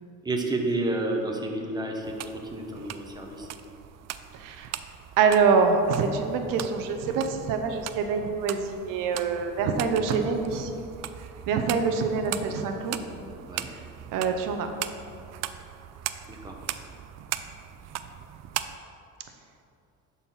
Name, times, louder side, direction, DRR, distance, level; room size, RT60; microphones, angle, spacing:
voice 1, 0.2-2.2 2.5-3.5 13.4-13.7 16.3-16.6, right 2 dB, 15° right, 1 dB, 1.1 m, -30 dB
sound 1, 2.0-18.8, right 11 dB, 55° right, 0.5 m, -39 dB
voice 2, 4.3-4.7 5.2-10.7 11.5-13.0 14.1-14.7, right 5 dB, 80° right, 6 dB, 0.8 m, -25 dB
11.0 x 4.3 x 5.7 m, 2.6 s
cardioid pair, 115°, 32 cm